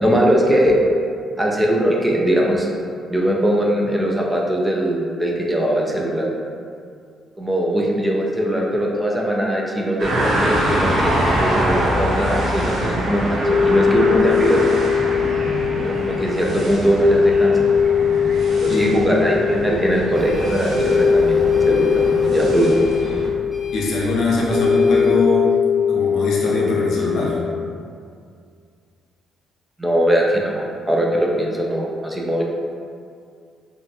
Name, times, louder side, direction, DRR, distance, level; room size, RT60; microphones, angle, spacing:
voice 1, 0.0-0.8 1.4-2.7 3.1-6.3 7.4-14.6 15.8-17.6 18.5-22.7 23.2-23.3 29.8-32.4, right 1 dB, 10° right, -2 dB, 0.4 m, -20 dB
sound 1, 10.0-23.3, right 1 dB, 70° right, 0.7 m, -25 dB
sound 2, 13.4-27.6, left 7 dB, 35° right, 0.7 m, -20 dB
Printer, 20.1-25.1, equal, 5° left, 0.8 m, -30 dB
voice 2, 23.7-25.6 25.9-27.4, left 2 dB, 75° left, -4 dB, 0.5 m, -22 dB
2.5 x 2.1 x 2.6 m, 2.3 s
cardioid pair, 90°, 0 cm